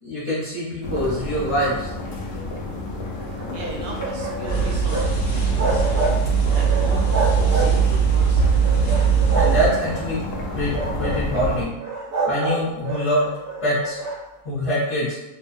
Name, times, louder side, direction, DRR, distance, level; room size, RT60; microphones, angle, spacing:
voice 1, 0.0-1.9 9.3-10.2 10.5-11.7 12.3-13.3 13.6-14.0 14.4-15.2, equal, 30° left, -13 dB, 0.8 m, -24 dB
sound 1, 0.8-11.7, left 1 dB, 65° left, 0.6 m, -31 dB
sound 2, 3.1-5.1 5.4-6.2 6.5-7.9 8.4-10.1 10.6-11.2 11.8-14.2, right 2 dB, 20° right, 0.4 m, -27 dB
voice 2, 3.5-6.1 6.5-8.6, right 2 dB, 65° right, -2 dB, 0.6 m, -38 dB
sound 3, 4.5-9.7, right 6 dB, 85° left, 1.1 m, -20 dB
2.5 x 2.2 x 2.4 m, 1.0 s
omnidirectional pair, 1.4 m